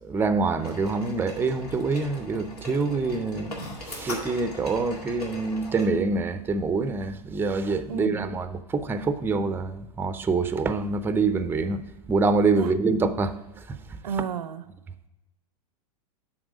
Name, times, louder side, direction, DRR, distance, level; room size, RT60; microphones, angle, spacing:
voice 1, 0.0-11.8 12.1-14.0, right 4 dB, 10° right, 0.5 m, -26 dB
sound 1, 0.6-5.9, left 2 dB, 90° left, 2.1 m, -40 dB
voice 2, 7.9-8.3 12.6-12.7 14.0-14.6, right 6 dB, 85° right, 0.6 m, -31 dB
8.0 x 6.0 x 4.9 m
hypercardioid pair, 110°, 19 cm